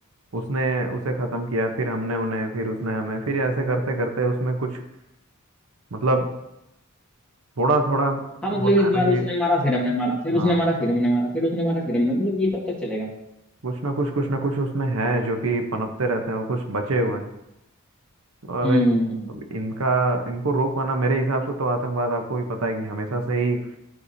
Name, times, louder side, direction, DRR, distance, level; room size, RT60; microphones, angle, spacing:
voice 1, 0.3-4.8 5.9-6.3 7.6-8.2 8.6-9.2 10.3-10.6 13.6-17.3 18.5-18.8 19.5-23.6, right 2 dB, 85° right, 5 dB, 0.9 m, -25 dB
voice 2, 8.4-13.1 18.6-19.3, left 1 dB, 5° left, -4 dB, 1.8 m, -22 dB
12.5 x 4.8 x 2.7 m, 0.87 s
head